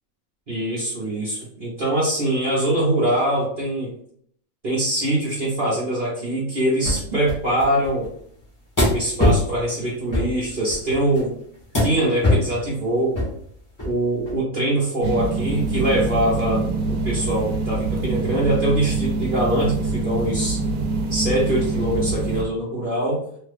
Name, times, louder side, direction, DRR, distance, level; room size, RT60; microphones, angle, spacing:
voice 1, 0.5-3.9 4.6-8.1 8.9-11.3 11.8-13.2 13.8-20.6 21.1-23.2, right 1 dB, 40° right, -7 dB, 0.9 m, -23 dB
sound 1, 6.8-7.0 7.3-8.1 8.8-9.4 10.1-10.3 10.7-11.2 11.7-11.9 12.2-12.5 13.2-13.4 13.8-13.9 14.3-14.4, left 1 dB, 15° left, 1.0 m, -20 dB
sound 2, 15.0-22.4, right 3 dB, 85° right, 1.1 m, -25 dB
3.3 x 2.3 x 3.3 m, 0.65 s
omnidirectional pair, 1.5 m